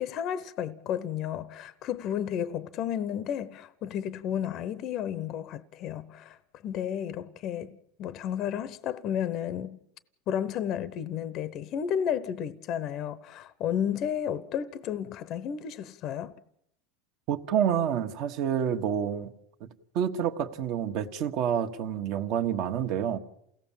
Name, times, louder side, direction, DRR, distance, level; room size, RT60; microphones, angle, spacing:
voice 1, 0.0-6.4 6.6-9.8 10.3-16.3, left 9 dB, 40° left, 0.8 m, -32 dB
voice 2, 17.3-19.3 19.6-19.7 19.9-23.2, right 9 dB, 45° right, 1.4 m, -28 dB
28.5 x 17.0 x 7.4 m
supercardioid pair, 155°, 0 cm